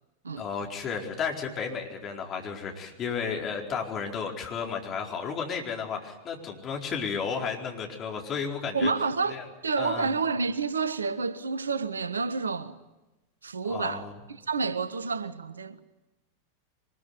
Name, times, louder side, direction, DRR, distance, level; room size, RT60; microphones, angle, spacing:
voice 1, 0.3-8.9 9.3-9.4 9.8-10.1 13.7-14.1, left 6 dB, 30° left, 4.7 m, -33 dB
voice 2, 8.7-12.8 13.4-15.8, right 4 dB, 75° right, 1.1 m, -29 dB
24.0 x 21.5 x 9.6 m
figure-of-eight pair, 90°, 0 cm